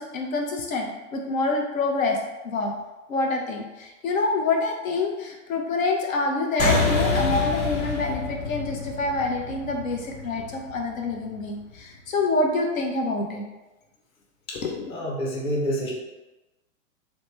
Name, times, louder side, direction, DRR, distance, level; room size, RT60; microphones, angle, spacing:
voice 1, 0.0-2.2 2.4-2.7 3.1-13.4 14.6-14.9, left 3 dB, 80° left, 1 dB, 0.7 m, -26 dB
sound 1, 6.6-11.4, left 3 dB, 35° left, 0.9 m, -27 dB
voice 2, 14.5-15.9, equal, 15° left, -3 dB, 0.5 m, -28 dB
3.1 x 2.1 x 3.0 m, 1.1 s
hypercardioid pair, 110°, 40 cm